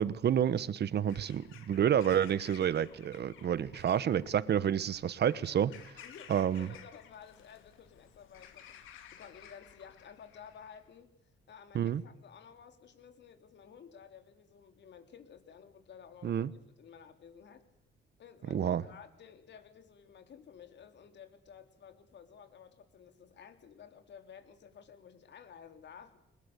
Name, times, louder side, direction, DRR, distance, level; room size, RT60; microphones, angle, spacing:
voice 1, 0.0-6.0 6.3-6.7 11.7-12.0 16.2-16.5 18.5-18.8, right 9 dB, 55° right, 1.2 m, -29 dB
Bird vocalization bird call bird song / Crow, 0.9-10.8, left 9 dB, 85° left, 2.9 m, -55 dB
voice 2, 6.6-11.1 11.5-16.5 16.8-17.6 18.2-26.2, left 7 dB, 60° left, 3.6 m, -53 dB
22.5 x 21.0 x 8.2 m
cardioid pair, 90°, 20 cm